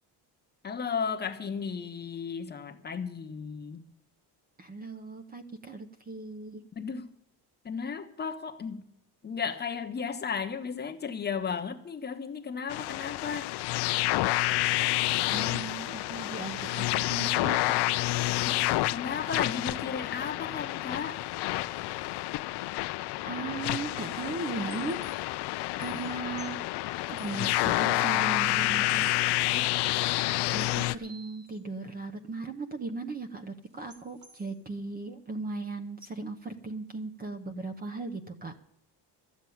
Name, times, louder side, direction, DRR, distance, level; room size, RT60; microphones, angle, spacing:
voice 1, 0.6-3.8 6.8-7.1 7.6-8.8 9.2-13.5 18.4-21.2 29.5-29.6, left 6 dB, 25° left, 5 dB, 1.0 m, -34 dB
voice 2, 4.6-6.6 15.3-17.7 23.2-25.0 25.8-26.6 27.1-29.6 30.5-38.5, right 3 dB, 20° right, 8 dB, 0.8 m, -37 dB
sound 1, 12.7-30.9, left 19 dB, 65° left, 0.6 m, -29 dB
sound 2, 24.4-27.7 28.0-28.1 28.6-28.7 28.9-31.6 33.8-34.6, right 4 dB, 45° right, 2.3 m, -53 dB
14.0 x 7.3 x 9.3 m, 0.77 s
cardioid pair, 175°, 42 cm